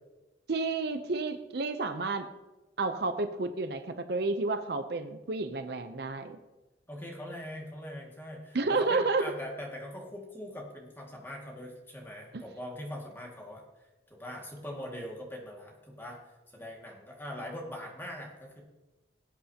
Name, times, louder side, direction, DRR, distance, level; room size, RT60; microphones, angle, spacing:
voice 1, 0.5-2.3 2.8-6.4 8.5-9.2, right 3 dB, 60° right, 9 dB, 0.6 m, -30 dB
voice 2, 6.9-13.6 14.1-16.2 16.5-18.6, equal, 10° left, -1 dB, 2.0 m, -42 dB
19.0 x 8.0 x 2.9 m, 1.1 s
head